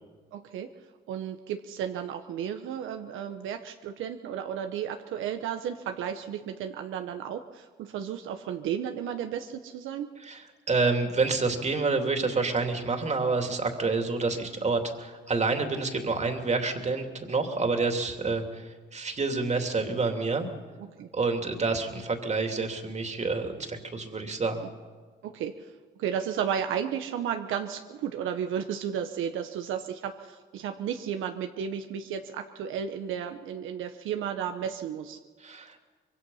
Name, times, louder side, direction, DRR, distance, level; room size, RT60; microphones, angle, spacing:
voice 1, 0.3-0.7 1.1-10.1 20.8-21.1 25.2-25.7 26.0-35.2, right 8 dB, 85° right, 6 dB, 1.0 m, -33 dB
voice 2, 10.2-20.5 21.1-24.6 35.4-35.7, right 3 dB, 35° right, 5 dB, 2.8 m, -28 dB
24.5 x 22.5 x 5.6 m, 1.5 s
cardioid pair, 90°, 20 cm